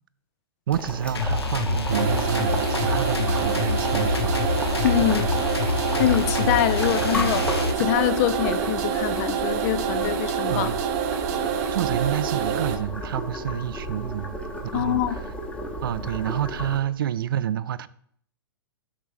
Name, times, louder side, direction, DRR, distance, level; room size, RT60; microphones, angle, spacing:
Boiling, 0.7-16.8, equal, 10° left, 0.9 m, -34 dB
voice 1, 0.7-4.2 5.0-5.3 10.5-10.8 11.7-14.4 14.7-15.2 15.8-17.9, right 10 dB, 60° right, 0.4 m, -28 dB
sound 1, 1.1-7.7, left 4 dB, 80° left, 1.0 m, -26 dB
sound 2, 1.9-12.8, right 8 dB, 40° right, 0.7 m, -27 dB
voice 2, 4.8-5.2 6.0-7.5 7.8-10.7 14.7-15.2, left 12 dB, 40° left, 0.4 m, -24 dB
7.3 x 5.4 x 3.2 m
figure-of-eight pair, 115°, 13 cm